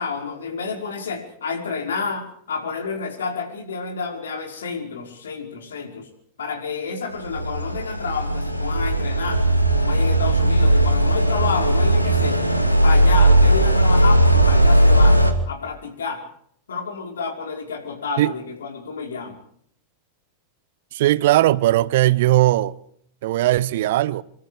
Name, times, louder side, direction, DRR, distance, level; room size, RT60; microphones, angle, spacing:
voice 1, 0.0-6.1 6.4-9.4 9.7-12.4 12.8-15.2 15.5-16.2 16.7-19.4, left 5 dB, 65° left, 5.3 m, -29 dB
sound 1, 7.2-15.3, right 1 dB, 90° left, 2.6 m, -17 dB
voice 2, 20.9-22.7 23.2-24.2, right 15 dB, 55° right, 0.9 m, -18 dB
26.5 x 25.5 x 5.0 m
figure-of-eight pair, 90°, 0 cm